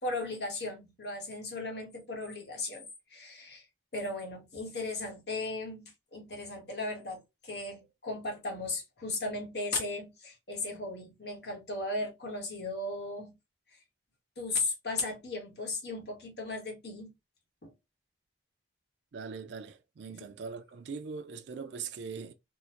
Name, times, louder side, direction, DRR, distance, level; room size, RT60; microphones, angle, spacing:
voice 1, 0.0-3.6 3.9-13.4 14.4-17.1 17.6-17.7 20.1-20.3, left 2 dB, 60° left, 1.0 m, -36 dB
voice 2, 19.1-22.3, right 5 dB, 65° right, 0.4 m, -41 dB
3.6 x 2.1 x 2.8 m
head